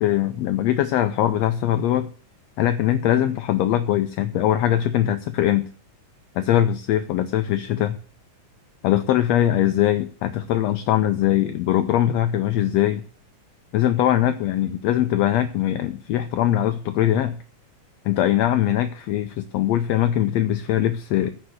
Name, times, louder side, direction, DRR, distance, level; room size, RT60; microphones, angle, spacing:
voice 1, 0.0-2.1 2.6-5.7 6.3-8.0 8.8-13.0 13.7-17.4 18.0-21.3, left 12 dB, 75° left, 9 dB, 1.6 m, -21 dB
15.0 x 5.3 x 8.1 m, 0.42 s
omnidirectional pair, 3.6 m